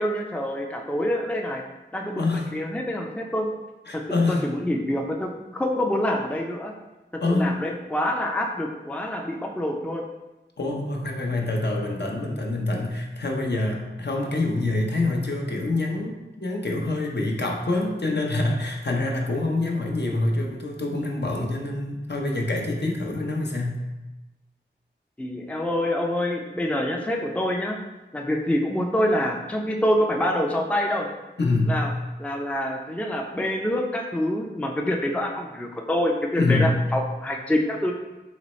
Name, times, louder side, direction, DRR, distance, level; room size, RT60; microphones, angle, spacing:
voice 1, 0.0-1.6 1.9-3.5 3.9-4.0 4.3-6.7 7.3-10.0 25.2-27.8 28.1-31.1 31.7-31.9 32.2-37.9, left 1 dB, 5° left, 1 dB, 0.4 m, -26 dB
voice 2, 2.2-2.5 3.9-4.4 7.2-7.6 10.6-23.8 31.4-31.8 36.4-36.8, left 2 dB, 60° left, 0 dB, 0.7 m, -26 dB
4.0 x 3.0 x 3.1 m, 1.1 s
wide cardioid pair, 50°, 19 cm